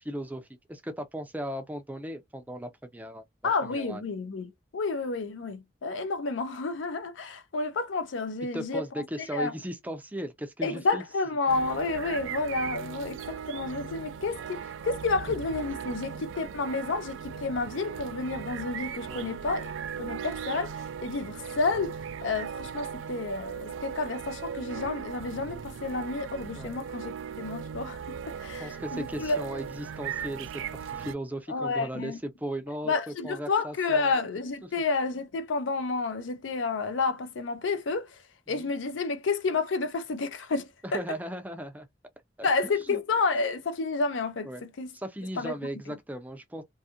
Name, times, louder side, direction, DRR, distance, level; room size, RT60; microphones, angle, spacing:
voice 1, 0.0-3.2 3.6-4.0 8.5-11.0 19.1-19.4 26.6-26.8 28.6-34.1 38.5-38.7 40.8-41.9 42.4-43.0 44.4-44.6 44.9-46.6, equal, 10° right, 0.4 m, -37 dB
voice 2, 3.4-8.8 9.2-9.5 10.6-19.7 20.0-29.4 31.5-32.2 32.9-38.2 38.5-41.0 42.4-44.9 45.4-45.5, left 3 dB, 80° left, 0.5 m, -30 dB
sound 1, 11.5-31.1, right 7 dB, 80° right, 0.3 m, -38 dB
2.5 x 2.4 x 2.8 m
head